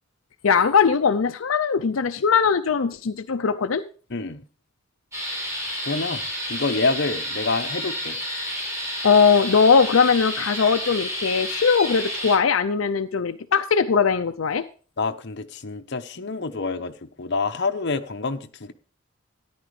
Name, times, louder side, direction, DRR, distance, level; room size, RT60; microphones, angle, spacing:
voice 1, 0.4-3.8 9.0-14.6, left 6 dB, 90° left, 0.6 m, -20 dB
voice 2, 4.1-4.4 5.9-6.2 6.5-8.2 15.0-18.7, left 3 dB, 60° left, 1.0 m, -27 dB
sound 1, 5.1-12.4, equal, 15° right, 5.3 m, -30 dB
13.5 x 10.5 x 3.3 m
head